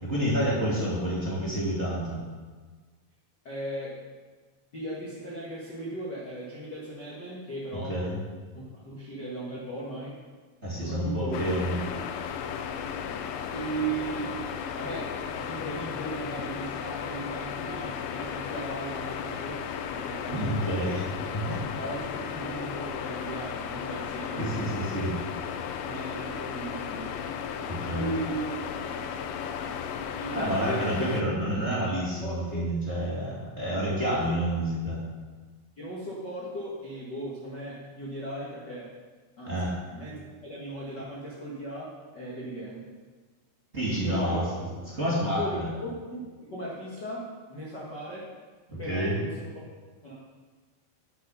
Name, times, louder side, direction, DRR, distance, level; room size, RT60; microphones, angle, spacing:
voice 1, 0.0-2.2 7.7-8.2 10.6-11.8 20.3-21.0 21.3-21.6 24.4-25.1 27.7-28.1 30.3-35.0 39.5-39.7 43.7-44.4 44.9-45.7 48.7-49.1, equal, 20° right, -7 dB, 1.9 m, -29 dB
voice 2, 3.4-4.0 4.7-8.0 8.5-10.2 10.8-11.4 11.8-11.9 13.5-14.4 14.7-20.8 21.7-24.7 25.8-27.1 27.9-28.6 30.2-31.0 32.2-32.7 34.1-34.2 34.6-34.7 35.8-38.9 39.4-42.8 44.0-44.5 45.3-48.3 48.8-49.5 50.0-50.1, right 1 dB, 65° left, -6 dB, 1.0 m, -37 dB
sound 1, 11.3-31.2, left 7 dB, 90° left, 2.9 m, -35 dB
10.5 x 7.5 x 5.5 m, 1.4 s
omnidirectional pair, 4.8 m